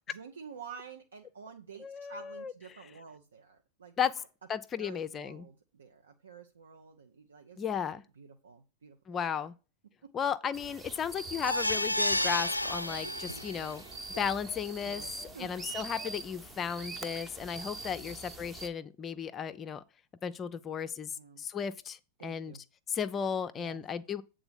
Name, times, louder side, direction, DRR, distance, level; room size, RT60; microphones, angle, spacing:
voice 1, 0.1-4.2 4.8-9.5 10.0-10.1 10.9-11.0 11.7-11.8 13.2-13.7 14.8-15.7 17.6-18.1 21.1-21.4 22.2-22.6 23.6-23.8, right 6 dB, 70° right, 0.7 m, -50 dB
voice 2, 1.8-2.5 4.0-4.1 4.5-5.5 7.6-8.0 9.1-9.5 10.1-13.8 14.2-15.0 15.4-19.8 20.2-21.1 21.4-22.6 22.9-24.2, left 7 dB, 25° left, 0.5 m, -34 dB
sound 1, 10.5-18.7, right 3 dB, 20° right, 1.0 m, -44 dB
sound 2, 11.4-13.7 14.1-14.2 14.6-14.7, left 1 dB, 90° left, 0.3 m, -31 dB
8.0 x 3.8 x 6.8 m
figure-of-eight pair, 90°, 0 cm